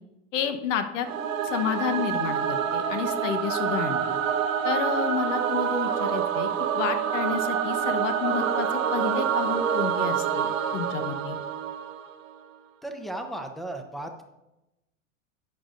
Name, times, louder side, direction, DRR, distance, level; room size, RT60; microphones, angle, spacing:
voice 1, 0.3-1.1 1.4-4.2 4.6-6.5 6.7-11.4, left 8 dB, 70° left, 8 dB, 1.1 m, -30 dB
Singing / Musical instrument, 1.0-12.3, right 8 dB, 85° right, 1.0 m, -27 dB
voice 2, 12.8-14.2, right 1 dB, ahead, 5 dB, 0.7 m, -35 dB
12.0 x 8.5 x 2.6 m, 0.94 s
hypercardioid pair, 125°, 39 cm